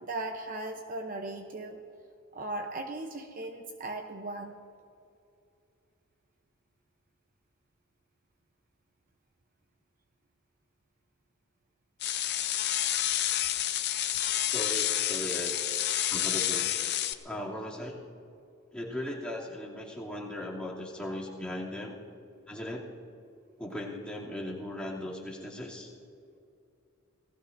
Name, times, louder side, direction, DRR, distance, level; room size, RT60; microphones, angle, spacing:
voice 1, 0.0-1.8 2.3-4.6, right 2 dB, 40° right, 4 dB, 0.8 m, -37 dB
sound 1, 12.0-17.1, left 12 dB, 50° left, 0.7 m, -29 dB
voice 2, 14.4-15.5 16.1-16.7 17.2-18.0 18.7-21.9 22.5-22.8 23.6-25.9, left 1 dB, 5° left, -6 dB, 2.8 m, -38 dB
28.0 x 18.5 x 2.7 m, 2.6 s
head